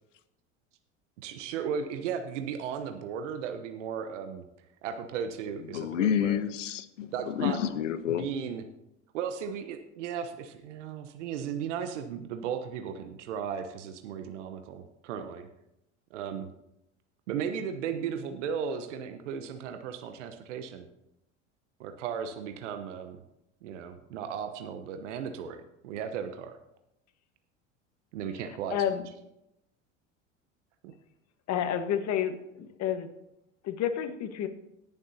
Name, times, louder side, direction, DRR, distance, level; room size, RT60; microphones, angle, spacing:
voice 1, 1.2-4.4 4.8-6.4 7.1-7.6 8.0-8.6 9.1-15.5 16.1-16.5 17.3-20.9 21.8-23.2 23.6-26.6 28.1-28.8 30.8-30.9, right 7 dB, 80° right, 7 dB, 1.0 m, -36 dB
voice 2, 5.7-8.2, left 9 dB, 90° left, 13 dB, 0.9 m, -29 dB
voice 3, 28.7-29.0 31.5-33.1 33.6-34.5, left 9 dB, 45° left, 8 dB, 1.4 m, -30 dB
18.5 x 7.2 x 2.8 m, 0.82 s
hypercardioid pair, 90°, 36 cm